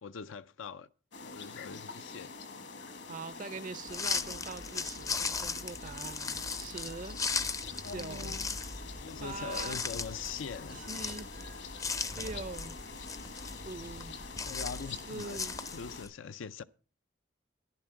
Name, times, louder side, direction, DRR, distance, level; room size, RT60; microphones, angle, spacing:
voice 1, 0.0-0.9 1.2-2.3 7.8-10.8 11.6-12.2 14.4-15.4 15.7-16.6, left 6 dB, 80° left, 0.5 m, -43 dB
sound 1, 1.1-16.1, left 4 dB, 65° left, 1.5 m, -46 dB
voice 2, 3.1-7.2 7.8-8.3 9.2-9.8 10.7-11.4 12.1-12.7 13.6-14.1 15.1-15.6, right 3 dB, 40° right, 0.5 m, -43 dB
sound 2, 3.9-16.1, left 4 dB, 15° left, 0.5 m, -38 dB
11.0 x 11.0 x 4.6 m
head